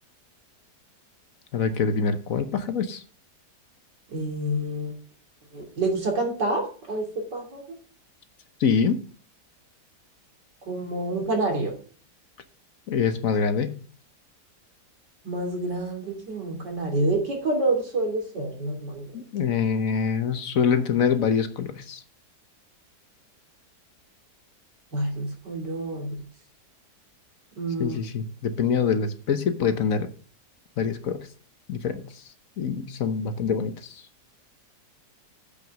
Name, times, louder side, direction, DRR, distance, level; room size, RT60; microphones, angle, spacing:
voice 1, 1.5-3.0 8.6-9.0 12.9-13.8 19.1-22.0 27.8-30.1 30.8-31.2 31.7-32.0 32.6-34.0, left 6 dB, 60° left, 1.2 m, -25 dB
voice 2, 4.1-4.9 5.5-7.6 10.7-11.7 15.3-19.1 24.9-26.2 27.6-28.0, right 2 dB, 85° right, 3.5 m, -28 dB
8.1 x 6.1 x 6.2 m
omnidirectional pair, 1.8 m